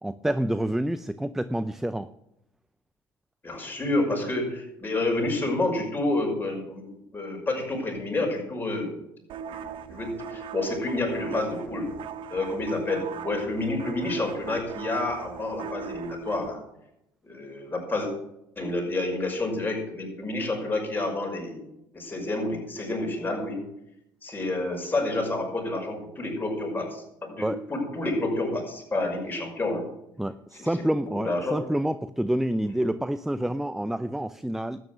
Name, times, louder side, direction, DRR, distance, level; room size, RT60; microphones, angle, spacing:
voice 1, 0.0-2.1 27.4-27.6 30.2-34.8, right 1 dB, 5° right, 14 dB, 0.5 m, -28 dB
voice 2, 3.4-9.0 9.5-11.9 12.3-16.6 17.2-18.1 18.6-21.6 21.9-23.6 24.2-29.9 30.5-30.9 31.2-31.6, left 2 dB, 20° left, 0 dB, 5.8 m, -29 dB
sound 1, 9.3-16.5, right 7 dB, 55° right, 0.9 m, -39 dB
13.0 x 9.4 x 6.4 m, 0.82 s
hypercardioid pair, 70°, 11 cm